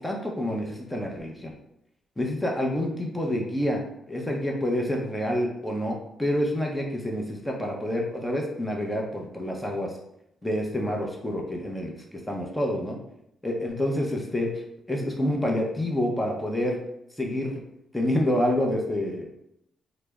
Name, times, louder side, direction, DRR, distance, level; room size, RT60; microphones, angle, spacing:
voice 1, 0.0-1.5 2.2-3.8 4.1-9.9 10.4-11.9 12.3-13.0 13.4-14.5 14.9-16.8 17.2-17.6 17.9-19.3, left 1 dB, 10° left, 0 dB, 0.6 m, -27 dB
3.3 x 2.0 x 3.4 m, 0.78 s
cardioid pair, 90°, 0 cm